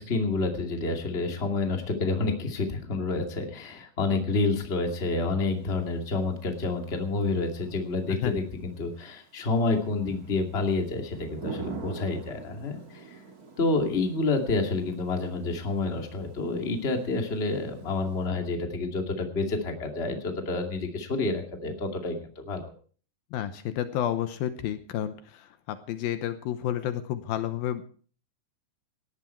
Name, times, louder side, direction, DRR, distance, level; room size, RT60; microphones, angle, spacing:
voice 1, 0.0-13.0 13.6-22.6, left 3 dB, 20° left, 3 dB, 1.9 m, -29 dB
Thunder / Rain, 5.5-18.3, right 4 dB, 30° right, 1.8 m, -46 dB
voice 2, 23.3-27.8, left 11 dB, 75° left, 10 dB, 2.6 m, -31 dB
18.0 x 13.5 x 4.5 m, 0.44 s
omnidirectional pair, 4.4 m